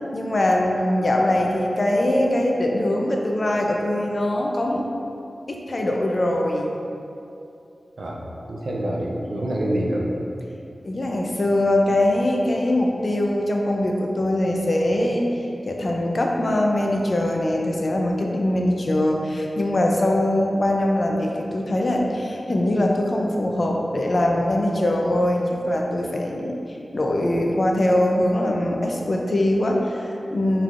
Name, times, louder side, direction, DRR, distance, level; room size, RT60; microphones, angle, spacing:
voice 1, 0.1-4.9 5.5-6.8 10.8-26.5 26.9-30.6, left 1 dB, 45° left, 0 dB, 0.5 m, -22 dB
voice 2, 8.0-10.1, right 1 dB, 70° right, -2 dB, 0.6 m, -26 dB
5.5 x 3.3 x 2.5 m, 2.7 s
wide cardioid pair, 105°, 0 cm